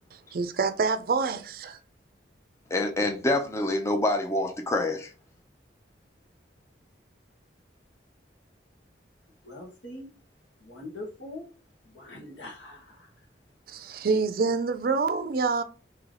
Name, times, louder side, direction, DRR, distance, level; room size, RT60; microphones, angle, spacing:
voice 1, 0.1-1.8 13.7-15.6, right 4 dB, 55° right, 0.4 m, -27 dB
voice 2, 2.7-5.1, left 2 dB, 15° left, 0.5 m, -26 dB
voice 3, 9.4-10.1 10.6-11.5 11.8-13.1, left 1 dB, 90° left, 1.3 m, -42 dB
3.3 x 2.9 x 3.7 m
head